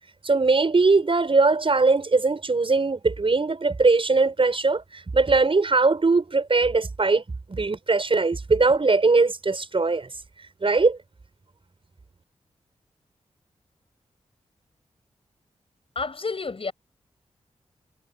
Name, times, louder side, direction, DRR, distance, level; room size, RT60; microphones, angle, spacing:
voice 1, 0.2-7.2 7.5-10.1 10.6-11.0, right 3 dB, 45° right, 6.1 m, -20 dB
voice 2, 16.0-16.7, left 4 dB, 50° left, 7.5 m, -30 dB
cardioid pair, 45°, 12 cm